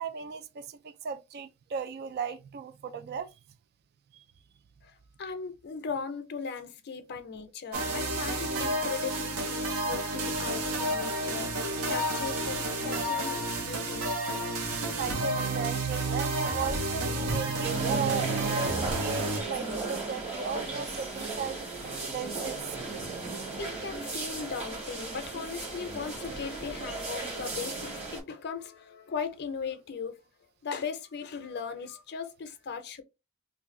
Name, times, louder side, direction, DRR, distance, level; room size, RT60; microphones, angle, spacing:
voice 1, 0.0-3.3 4.1-4.2 15.0-22.9, right 6 dB, 45° right, 0.3 m, -36 dB
voice 2, 4.8-14.1 23.6-30.2 30.6-33.0, left 5 dB, 50° left, 0.5 m, -38 dB
sound 1, 7.7-19.4, right 2 dB, 70° right, 0.7 m, -30 dB
sound 2, 17.6-28.2, right 3 dB, 30° right, 1.1 m, -36 dB
2.6 x 2.3 x 3.6 m
head